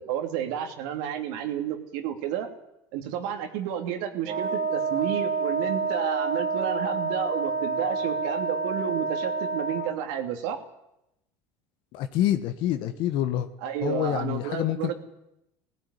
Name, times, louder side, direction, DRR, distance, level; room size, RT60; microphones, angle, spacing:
voice 1, 0.0-2.5 2.9-10.6 13.6-14.9, right 9 dB, 70° right, 5 dB, 2.9 m, -31 dB
Wind instrument woodwind instrument, 4.2-10.0, right 4 dB, 45° right, 2.6 m, -28 dB
voice 2, 11.9-13.5 13.8-14.9, left 12 dB, 60° left, 8 dB, 1.6 m, -27 dB
17.0 x 16.0 x 10.0 m, 0.87 s
supercardioid pair, 95°, 10 cm